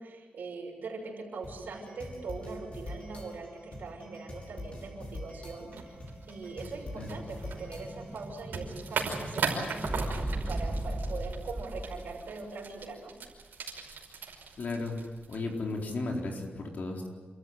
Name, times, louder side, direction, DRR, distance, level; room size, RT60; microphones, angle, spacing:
voice 1, 0.0-6.0 6.3-13.1, right 3 dB, 70° right, 0 dB, 6.3 m, -41 dB
sound 1, 1.4-8.3, left 1 dB, 40° left, 6.1 m, -44 dB
sound 2, 5.7-15.9, right 5 dB, 85° right, 5.4 m, -39 dB
Explosion, 6.1-12.2, right 1 dB, 5° right, 2.7 m, -37 dB
voice 2, 14.6-15.0 15.3-17.1, left 2 dB, 60° left, 1 dB, 4.3 m, -34 dB
29.0 x 14.0 x 9.6 m, 1.5 s
wide cardioid pair, 115°, 3 cm